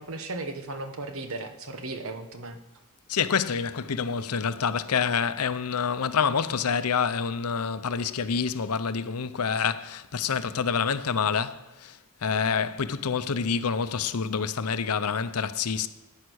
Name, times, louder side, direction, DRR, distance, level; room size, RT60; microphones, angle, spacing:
voice 1, 0.0-2.6, right 2 dB, 65° right, 1.2 m, -36 dB
voice 2, 3.1-15.9, left 6 dB, 85° left, 0.7 m, -27 dB
14.5 x 9.6 x 6.3 m
head